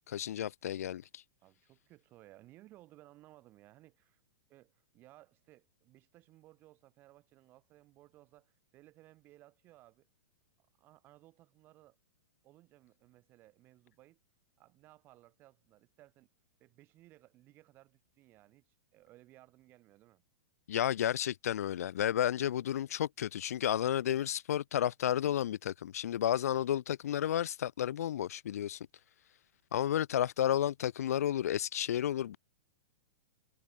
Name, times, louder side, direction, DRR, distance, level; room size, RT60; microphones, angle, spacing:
voice 1, 0.1-1.2 20.7-28.9 29.7-32.4, left 11 dB, 85° left, 0.4 m, -32 dB
voice 2, 1.4-4.2 4.5-10.1 10.6-12.0 12.4-14.2 14.6-16.3 16.6-20.2, right 16 dB, 25° right, 2.7 m, -60 dB
hypercardioid pair, 160°, 8 cm